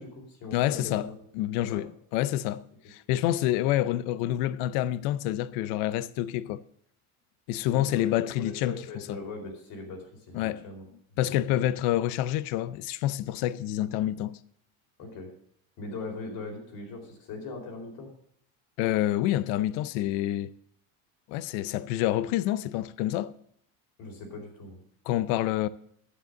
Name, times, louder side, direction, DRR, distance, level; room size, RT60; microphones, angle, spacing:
voice 1, 0.0-1.1 1.6-1.8 7.7-10.9 11.3-11.6 15.0-15.3 15.8-18.1 24.0-24.8, left 3 dB, 65° left, 4.3 m, -40 dB
voice 2, 0.5-6.6 7.5-8.8 9.1-9.2 10.3-10.6 11.2-14.4 18.8-20.5 21.3-23.3 25.1-25.7, left 13 dB, 80° left, 0.6 m, -28 dB
10.0 x 7.8 x 7.8 m
cardioid pair, 130°, 37 cm